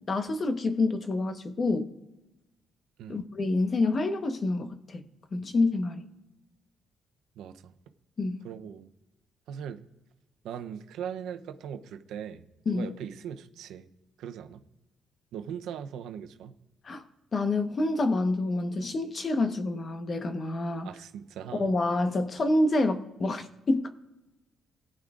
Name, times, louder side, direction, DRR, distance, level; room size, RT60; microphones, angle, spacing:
voice 1, 0.1-1.9 3.1-5.0 5.3-6.0 8.2-8.4 12.7-12.9 16.8-17.0 17.3-20.9 21.5-23.9, left 2 dB, 40° left, 7 dB, 1.1 m, -27 dB
voice 2, 7.4-7.7 8.4-8.9 9.5-9.8 10.4-13.9 14.2-14.6 15.3-16.5 20.8-21.7, right 8 dB, 85° right, 9 dB, 0.7 m, -40 dB
18.0 x 10.0 x 2.5 m, 1.0 s
cardioid pair, 90°, 0 cm